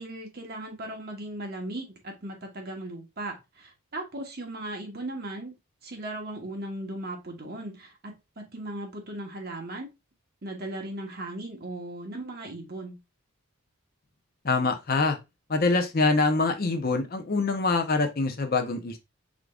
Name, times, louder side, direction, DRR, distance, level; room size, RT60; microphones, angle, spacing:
voice 1, 0.0-5.5 5.8-9.9 10.4-13.0, right 1 dB, 45° right, 1.0 m, -37 dB
voice 2, 14.4-15.2 15.5-19.0, left 3 dB, 40° left, 0.6 m, -25 dB
4.8 x 3.7 x 2.3 m
head